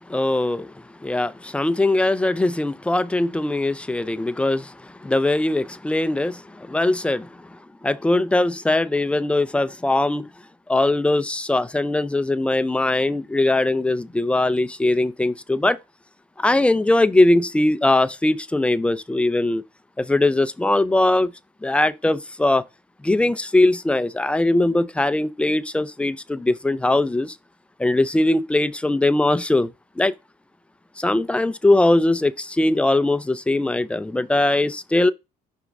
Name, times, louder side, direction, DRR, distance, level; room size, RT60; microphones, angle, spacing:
voice 1, 0.1-10.3 10.7-15.8 16.4-19.6 20.0-21.3 21.6-22.6 23.0-27.4 27.8-29.7 30.0-30.1 31.0-35.1, left 2 dB, 5° left, 0.5 m, -21 dB
5.9 x 3.7 x 5.2 m
cardioid pair, 110°, 17 cm